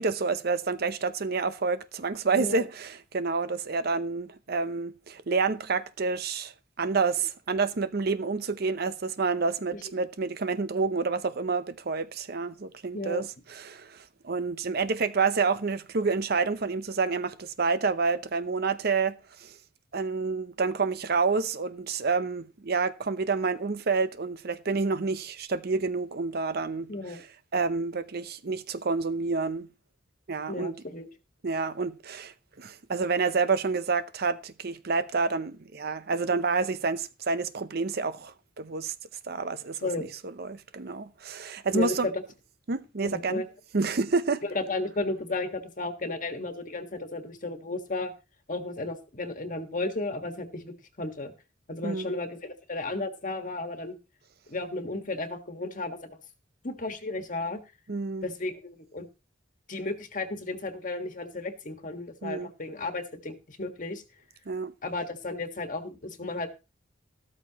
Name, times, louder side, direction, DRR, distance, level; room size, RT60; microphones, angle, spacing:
voice 1, 0.0-19.6 19.9-27.2 27.5-29.7 30.3-30.8 31.4-38.9 39.2-39.9 40.2-42.1 42.7-43.4 43.7-44.4 51.8-52.1 57.9-58.3 62.2-62.5 64.5-64.7, right 4 dB, 55° right, 0.7 m, -29 dB
voice 2, 12.9-13.2 26.9-27.2 30.5-31.1 39.8-40.1 41.7-41.9 43.0-43.4 44.5-48.1 48.5-51.3 51.7-54.0 54.5-56.0 56.6-57.6 58.2-59.1 59.7-64.0 64.8-66.5, left 2 dB, 45° left, 1.6 m, -34 dB
13.5 x 13.0 x 2.9 m
head